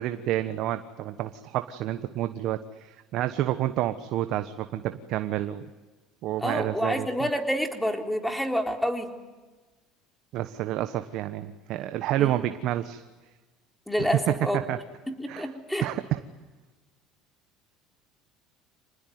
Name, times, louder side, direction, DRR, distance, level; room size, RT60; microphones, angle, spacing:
voice 1, 0.0-5.7 6.2-7.1 10.3-13.0 14.0-14.8 15.3-15.5 15.8-16.2, right 13 dB, 60° right, 10 dB, 1.2 m, -29 dB
voice 2, 6.4-9.1 12.2-12.3 13.9-14.6 15.2-15.9, equal, 5° left, 5 dB, 3.7 m, -28 dB
26.5 x 20.0 x 9.5 m, 1.2 s
supercardioid pair, 95°, 0 cm